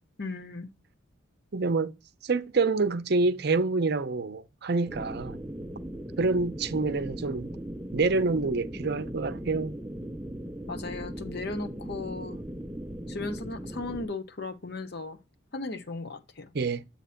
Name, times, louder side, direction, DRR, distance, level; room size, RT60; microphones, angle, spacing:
voice 1, 0.2-0.7 10.7-12.4 13.1-15.2 15.5-16.5, left 3 dB, 55° left, 0.8 m, -36 dB
voice 2, 1.5-1.9 2.2-5.4 6.2-7.5 7.9-9.8 16.5-16.8, right 3 dB, 55° right, 0.6 m, -27 dB
sound 1, 4.9-14.0, right 1 dB, 5° right, 0.4 m, -38 dB
8.5 x 2.9 x 5.6 m
head